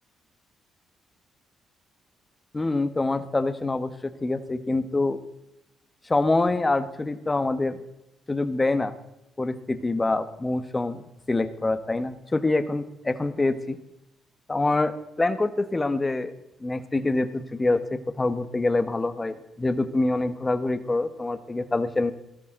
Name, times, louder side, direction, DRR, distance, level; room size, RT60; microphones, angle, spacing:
voice 1, 2.5-5.2 6.0-7.8 8.3-8.9 9.4-11.0 11.3-13.8 14.5-16.3 16.6-22.1, left 2 dB, 20° left, 11 dB, 1.3 m, -25 dB
18.0 x 13.0 x 3.8 m, 0.87 s
cardioid pair, 90°, 0 cm